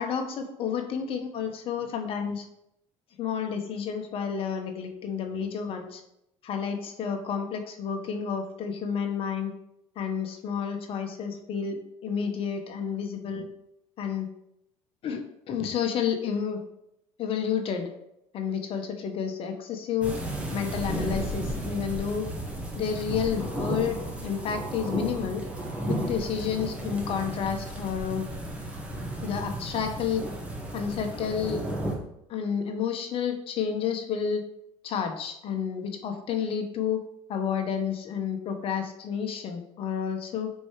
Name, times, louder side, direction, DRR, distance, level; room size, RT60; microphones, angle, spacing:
voice 1, 0.0-2.5 3.2-6.0 6.4-9.5 10.0-13.5 14.0-14.3 15.0-16.6 17.2-17.9 18.3-20.1 20.5-22.3 22.8-25.4 25.8-28.2 29.2-30.2 30.7-31.6 32.3-34.4 34.8-37.0 37.3-40.5, left 7 dB, 50° left, 5 dB, 1.2 m, -30 dB
sound 1, 20.0-31.9, right 1 dB, 10° right, 1.7 m, -34 dB
5.2 x 4.6 x 4.9 m, 0.79 s
supercardioid pair, 105°, 12 cm